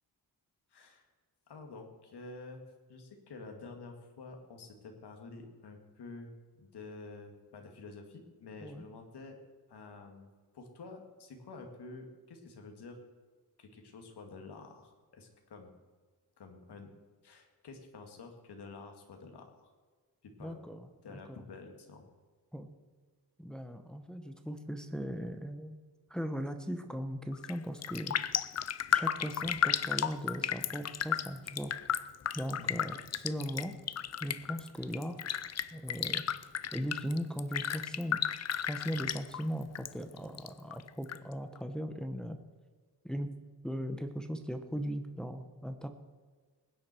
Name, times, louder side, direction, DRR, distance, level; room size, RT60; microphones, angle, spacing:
voice 1, 0.7-1.1 1.5-2.6 2.9-6.3 6.6-9.4 9.7-13.0 13.6-15.7 16.4-16.9 17.2-19.7 20.2-20.6 21.0-22.0 32.6-32.9, left 3 dB, 75° left, 3 dB, 2.3 m, -49 dB
voice 2, 20.4-20.9 21.1-21.4 22.5-22.7 23.4-25.8 26.1-28.2 28.9-31.7 32.3-33.7 34.2-35.2 35.7-36.2 36.7-38.2 38.7-42.4 43.0-43.3 43.6-45.9, equal, ahead, 6 dB, 1.0 m, -38 dB
Raindrop, 27.3-27.6 27.8-39.9 40.2-41.2 41.6-41.7, left 9 dB, 40° left, 0.5 m, -34 dB
21.5 x 9.6 x 4.5 m, 1.5 s
wide cardioid pair, 150°, 40 cm